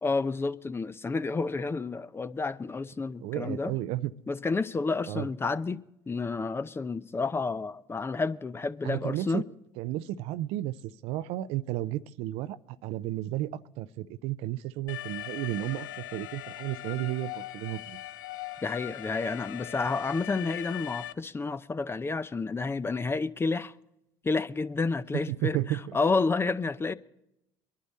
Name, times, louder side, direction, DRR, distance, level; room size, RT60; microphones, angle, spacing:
voice 1, 0.0-3.7 4.3-5.8 6.1-9.4 18.6-23.7 24.2-26.9, left 4 dB, 20° left, 0.6 m, -30 dB
voice 2, 3.2-4.1 5.1-5.3 8.8-9.4 9.8-10.7 11.0-12.6 12.8-18.0 25.3-25.9, right 15 dB, 70° right, 0.5 m, -33 dB
Alarm, 14.9-21.1, left 14 dB, 85° left, 0.4 m, -40 dB
22.5 x 11.5 x 4.2 m
hypercardioid pair, 70°, 11 cm